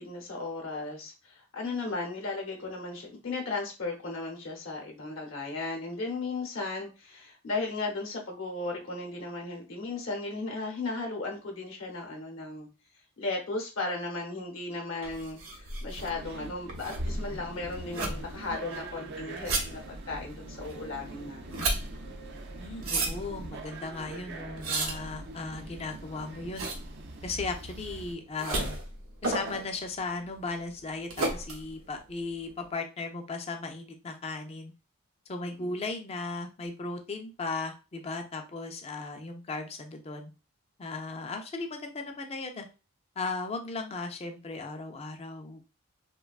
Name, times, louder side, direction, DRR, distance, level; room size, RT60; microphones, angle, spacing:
voice 1, 0.0-12.7 13.2-21.7 35.4-35.8, left 3 dB, 65° left, 1 dB, 0.7 m, -36 dB
sound 1, 15.0-32.7, right 2 dB, 80° right, 0.7 m, -35 dB
sound 2, 16.0-28.2, right 2 dB, 50° right, 0.4 m, -44 dB
voice 2, 22.6-26.7 27.2-28.8 29.2-34.7 35.3-40.3 40.8-42.7 43.2-45.6, left 3 dB, 30° left, 5 dB, 0.3 m, -36 dB
3.1 x 2.2 x 2.3 m, 0.31 s
head